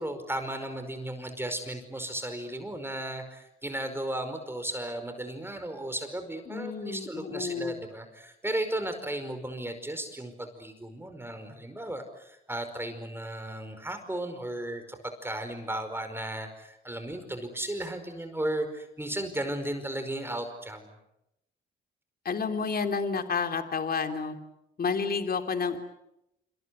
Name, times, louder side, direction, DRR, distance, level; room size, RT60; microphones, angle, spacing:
voice 1, 0.0-20.9, right 1 dB, 10° right, 7 dB, 5.0 m, -35 dB
voice 2, 6.5-7.8 22.2-24.4 24.8-25.8, left 5 dB, 50° left, 6 dB, 3.3 m, -30 dB
27.0 x 26.5 x 8.3 m, 0.84 s
cardioid pair, 85°, 20 cm